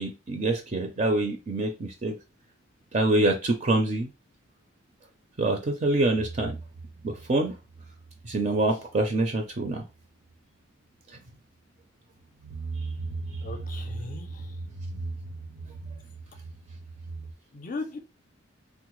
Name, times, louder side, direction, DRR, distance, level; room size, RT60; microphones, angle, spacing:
voice 1, 0.0-2.1 2.9-4.1 5.4-6.5 7.0-7.5 8.3-9.8, right 2 dB, 35° right, 4 dB, 0.4 m, -25 dB
sound 1, 6.1-8.7 9.0-9.3 9.6-9.7 12.2-17.3, right 3 dB, 80° right, 0.7 m, -38 dB
voice 2, 13.4-14.5 17.5-18.0, left 3 dB, 40° left, 7 dB, 0.5 m, -37 dB
3.5 x 2.1 x 3.0 m, 0.27 s
head